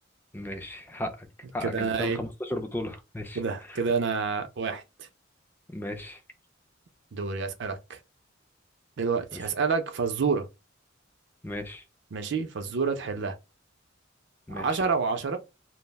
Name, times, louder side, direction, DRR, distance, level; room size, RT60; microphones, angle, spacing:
voice 1, 0.3-1.3 1.5-3.4 5.7-6.2 9.3-9.4 11.4-11.8 14.5-14.7, left 1 dB, 10° left, 0.4 m, -35 dB
voice 2, 1.6-2.2 3.4-5.1 7.1-8.0 9.0-10.5 12.1-13.4 14.5-15.4, right 5 dB, 60° right, 0.5 m, -28 dB
2.3 x 2.0 x 3.3 m
head